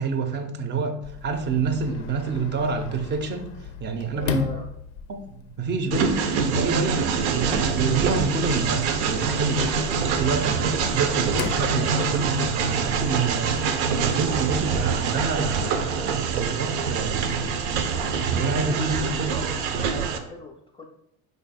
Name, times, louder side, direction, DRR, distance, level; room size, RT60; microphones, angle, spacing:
voice 1, 0.0-3.5 3.8-4.4 5.1-13.6 13.9-17.8 18.2-19.3, right 4 dB, 30° right, 0.6 m, -28 dB
Sliding door, 1.0-12.6, left 7 dB, 70° left, 0.5 m, -37 dB
voice 2, 4.1-4.7 19.2-20.9, left 1 dB, 15° left, 0.3 m, -39 dB
Train, 5.9-20.2, right 6 dB, 75° right, 0.6 m, -25 dB
3.2 x 2.3 x 4.1 m
hypercardioid pair, 85°, 34 cm